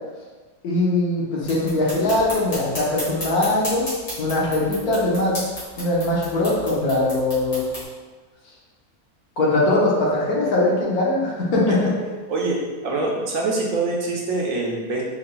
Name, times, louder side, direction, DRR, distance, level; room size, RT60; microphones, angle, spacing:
voice 1, 0.6-3.8 4.2-5.4 5.8-7.6 9.4-11.9, left 2 dB, 80° left, -4 dB, 1.4 m, -21 dB
sound 1, 1.4-7.8, left 1 dB, 60° left, 2.1 m, -34 dB
voice 2, 12.3-15.0, right 3 dB, 65° right, -2 dB, 1.0 m, -24 dB
4.6 x 3.2 x 2.2 m, 1.3 s
omnidirectional pair, 1.6 m